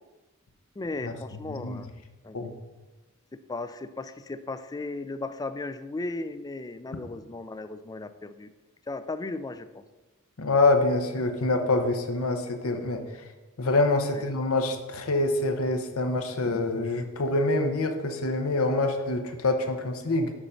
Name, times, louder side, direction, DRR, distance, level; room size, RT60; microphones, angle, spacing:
voice 1, 0.8-1.9 2.2-2.4 3.3-8.5 8.9-9.8 14.1-14.2, left 2 dB, 20° left, 12 dB, 0.3 m, -36 dB
voice 2, 1.5-1.8 2.3-2.5 10.4-13.0 13.6-20.3, left 2 dB, 80° left, 6 dB, 0.9 m, -26 dB
7.1 x 5.1 x 5.5 m, 1.2 s
head